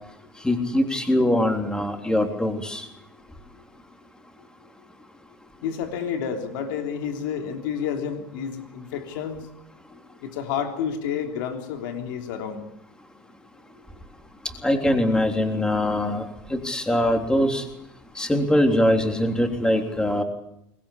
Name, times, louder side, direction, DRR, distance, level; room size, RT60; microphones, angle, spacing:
voice 1, 0.4-2.8 14.6-16.2 16.5-17.6 18.2-20.2, left 1 dB, 5° left, 4 dB, 3.4 m, -22 dB
voice 2, 5.6-9.4 10.2-12.6, left 7 dB, 90° left, 4 dB, 3.4 m, -30 dB
23.5 x 20.0 x 8.6 m, 0.77 s
supercardioid pair, 125°, 10 cm